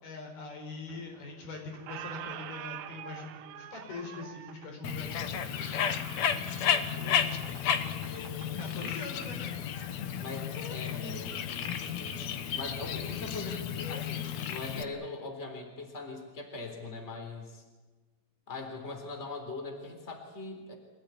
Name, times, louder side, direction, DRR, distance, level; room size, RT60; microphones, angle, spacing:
voice 1, 0.0-6.0 8.3-9.6, left 3 dB, 90° left, 2 dB, 6.6 m, -43 dB
Squeak, 0.9-1.4 1.7-9.3, right 11 dB, 75° right, 2.7 m, -46 dB
Bird, 4.8-14.8, left 8 dB, 60° left, 2.0 m, -33 dB
voice 2, 5.0-5.5 6.9-8.6 10.2-12.2 12.5-17.6 18.5-20.7, left 3 dB, 20° left, 3 dB, 3.6 m, -42 dB
26.0 x 17.5 x 9.7 m, 1.3 s
omnidirectional pair, 4.3 m